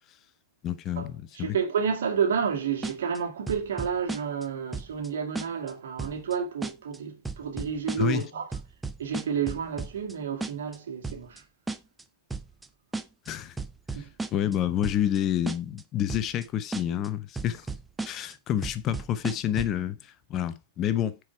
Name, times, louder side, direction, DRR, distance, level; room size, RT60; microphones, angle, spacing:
voice 1, 0.6-1.5 8.0-8.3 13.3-13.6 14.3-17.7 18.0-21.2, left 11 dB, 35° left, 0.8 m, -28 dB
voice 2, 1.3-8.5 9.0-11.4 13.9-14.1, right 7 dB, 60° right, 2.4 m, -30 dB
sound 1, 2.8-3.2 3.5-4.5 4.7-5.1 5.4-5.7 6.0-6.3 6.6-7.0 7.3-8.2 8.5-10.1 10.4-10.8 11.0-11.4 11.7-12.0 12.3-12.7 12.9-13.3 13.6-14.6 14.8-15.2 15.5-15.8 16.1-16.5 16.7-17.1 17.4-18.3 18.6-19.8, right 3 dB, 10° right, 0.7 m, -34 dB
8.9 x 4.7 x 4.7 m
figure-of-eight pair, 90°, 0 cm